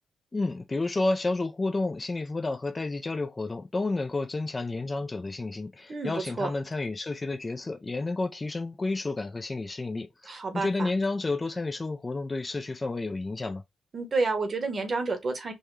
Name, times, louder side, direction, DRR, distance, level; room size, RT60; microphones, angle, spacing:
voice 1, 0.3-13.6, left 2 dB, 20° left, 0.3 m, -31 dB
voice 2, 5.9-6.5 10.3-10.9 13.9-15.5, right 3 dB, 35° right, 0.9 m, -30 dB
5.3 x 2.2 x 3.1 m
wide cardioid pair, 150°, 0 cm